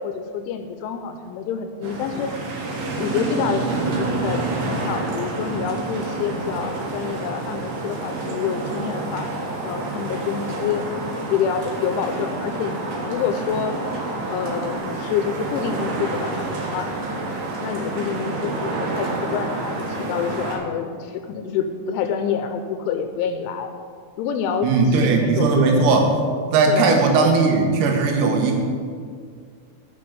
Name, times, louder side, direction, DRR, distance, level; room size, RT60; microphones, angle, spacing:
voice 1, 0.0-2.4 2.9-9.3 9.6-10.9 11.2-12.8 13.0-13.8 14.2-16.9 17.6-23.7 24.2-25.9 26.7-27.0, left 7 dB, 85° left, 7 dB, 2.8 m, -27 dB
sound 1, 1.8-20.6, right 2 dB, 65° right, 3.1 m, -28 dB
voice 2, 24.6-26.1 26.5-28.6, right 4 dB, 90° right, 2 dB, 3.9 m, -18 dB
7.4 x 7.0 x 7.8 m, 2.1 s
omnidirectional pair, 5.8 m